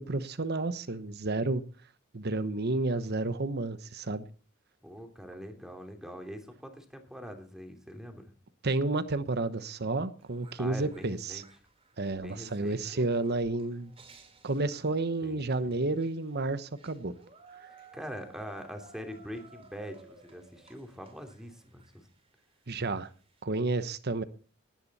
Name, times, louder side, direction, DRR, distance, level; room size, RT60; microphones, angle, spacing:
voice 1, 0.0-1.6 2.1-4.2 8.6-11.4 12.0-13.9 14.4-17.1 22.7-23.1 23.4-24.2, right 2 dB, 55° right, 1.0 m, -31 dB
voice 2, 4.8-8.2 10.6-11.4 12.2-13.1 15.2-15.8 17.7-22.1, equal, 5° right, 2.9 m, -43 dB
sound 1, 10.2-23.4, right 3 dB, 30° right, 2.6 m, -57 dB
18.0 x 10.5 x 4.2 m
head